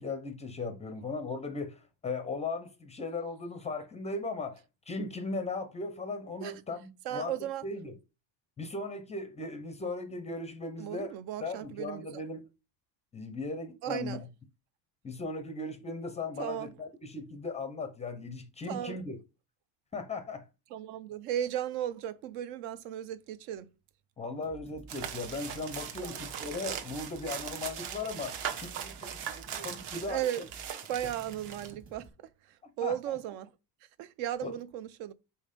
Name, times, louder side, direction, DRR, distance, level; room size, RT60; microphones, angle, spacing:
voice 1, 0.0-7.3 7.6-7.9 8.6-11.1 11.4-12.5 13.1-14.2 15.0-19.2 19.9-20.5 24.2-30.2 32.8-32.9 34.4-34.6, left 3 dB, 15° left, 0.4 m, -37 dB
voice 2, 7.0-7.7 10.8-12.2 13.8-14.3 16.4-16.8 18.7-19.0 20.7-23.7 26.0-26.2 30.0-30.5 30.9-33.5 34.0-35.1, right 11 dB, 70° right, 0.7 m, -36 dB
sound 1, 24.4-32.1, right 3 dB, 25° right, 1.4 m, -52 dB
sound 2, 24.9-31.7, right 8 dB, 55° right, 1.1 m, -40 dB
5.6 x 4.2 x 5.0 m
cardioid pair, 160°, 48 cm